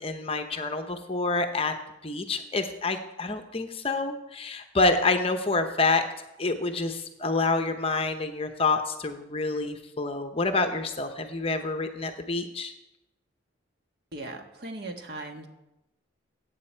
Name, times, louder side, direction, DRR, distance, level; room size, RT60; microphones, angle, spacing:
voice 1, 0.0-1.7 2.0-6.0 6.4-12.7, left 3 dB, 30° left, 7 dB, 0.8 m, -27 dB
voice 2, 14.1-15.5, right 2 dB, 55° right, 4 dB, 1.4 m, -38 dB
15.0 x 8.7 x 4.4 m, 0.92 s
head